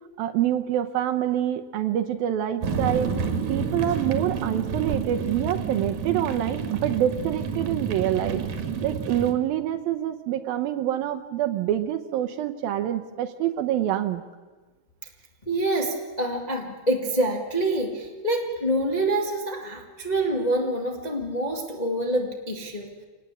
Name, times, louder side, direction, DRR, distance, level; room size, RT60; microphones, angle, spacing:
voice 1, 0.2-3.1 3.5-8.4 8.8-14.2, right 11 dB, 75° right, 7 dB, 2.5 m, -26 dB
sound 1, 2.6-9.3, right 5 dB, 55° right, 2.7 m, -29 dB
voice 2, 15.4-22.9, right 1 dB, 20° left, 1 dB, 1.1 m, -26 dB
26.0 x 19.5 x 8.3 m, 1.3 s
omnidirectional pair, 4.6 m